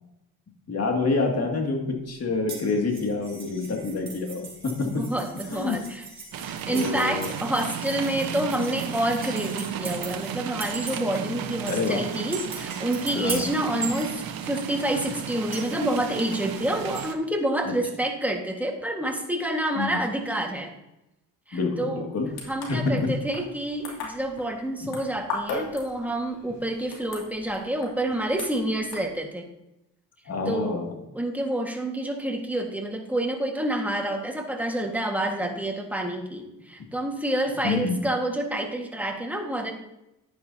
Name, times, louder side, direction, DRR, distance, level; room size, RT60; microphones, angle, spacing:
voice 1, 0.7-5.0 5.5-5.8 6.7-7.3 11.7-12.0 13.1-13.5 19.8-20.0 21.5-22.3 22.7-23.1 24.8-24.9 30.3-30.9 37.6-38.0, left 3 dB, 40° left, 2 dB, 2.3 m, -27 dB
sound 1, 2.5-10.4 10.6-11.2 11.7-14.7 15.5-17.1, right 4 dB, 30° right, 3.7 m, -39 dB
voice 2, 4.8-6.0 6.5-20.7 21.5-22.1 22.5-29.5 30.5-30.8 31.1-39.7, right 1 dB, 5° right, 2 dB, 1.7 m, -28 dB
sound 2, 6.3-17.1, right 8 dB, 65° right, 1.1 m, -34 dB
sound 3, 22.2-29.1, left 3 dB, 75° left, 3.0 m, -38 dB
10.5 x 9.7 x 2.8 m, 0.89 s
cardioid pair, 90°, 38 cm